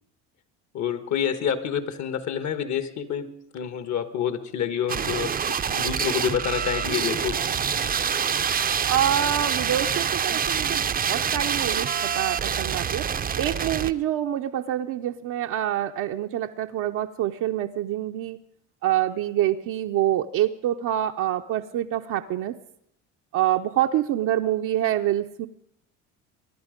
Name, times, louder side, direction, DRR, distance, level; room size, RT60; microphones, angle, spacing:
voice 1, 0.7-7.4 7.7-8.0, left 8 dB, 55° left, 11 dB, 1.6 m, -28 dB
sound 1, 4.9-13.9, right 7 dB, 25° right, 0.6 m, -26 dB
voice 2, 8.9-13.1 13.3-18.4 18.8-22.6 23.3-25.5, right 12 dB, 65° right, 3 dB, 0.8 m, -26 dB
24.0 x 11.0 x 5.2 m, 0.71 s
supercardioid pair, 95°, 34 cm